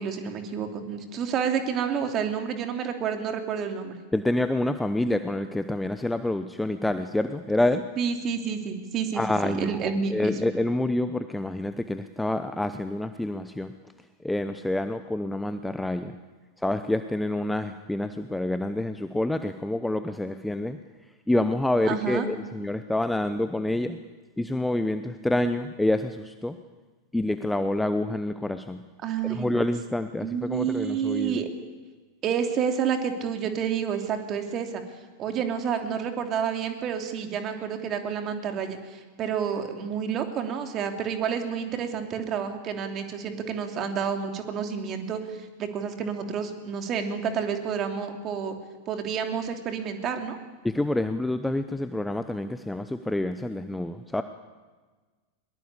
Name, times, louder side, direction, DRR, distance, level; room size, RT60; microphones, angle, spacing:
voice 1, 0.0-3.9 8.0-10.4 21.9-22.2 29.0-29.5 30.2-31.5 32.2-34.8 35.2-48.6 48.9-50.4, right 7 dB, 30° right, 5 dB, 3.1 m, -29 dB
voice 2, 4.1-7.9 9.1-13.7 14.2-16.1 16.6-20.8 21.3-24.0 24.4-26.6 27.1-28.8 29.2-31.4 50.6-54.2, left 1 dB, 5° left, 10 dB, 0.8 m, -27 dB
21.5 x 21.5 x 8.5 m, 1.4 s
figure-of-eight pair, 90°, 0 cm